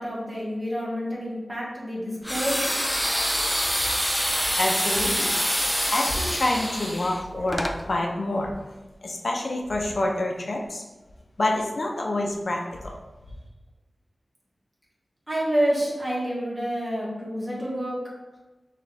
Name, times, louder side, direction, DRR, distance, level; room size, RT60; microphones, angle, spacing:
voice 1, 0.0-2.8 15.3-18.0, equal, 25° right, -5 dB, 1.4 m, -28 dB
sound 1, 2.2-7.8, equal, 5° left, 0.3 m, -26 dB
voice 2, 4.6-5.3 5.8-8.5 9.0-10.8 11.4-12.9, left 1 dB, 65° left, 1 dB, 0.7 m, -27 dB
5.9 x 2.5 x 3.3 m, 1.1 s
wide cardioid pair, 80°, 0 cm